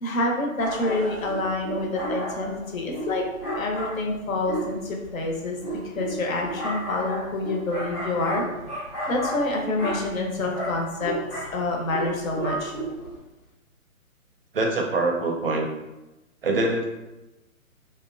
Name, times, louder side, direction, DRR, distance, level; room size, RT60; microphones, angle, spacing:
voice 1, 0.0-3.2 3.6-5.6 5.9-8.4 9.1-11.1 11.4-12.7, left 2 dB, 70° left, 1 dB, 0.8 m, -27 dB
sound 1, 0.6-13.2, right 1 dB, 20° left, 0.5 m, -33 dB
voice 2, 14.5-15.7 16.4-16.9, right 2 dB, 45° right, 2 dB, 0.4 m, -24 dB
2.8 x 2.1 x 2.5 m, 0.98 s
hypercardioid pair, 145°, 42 cm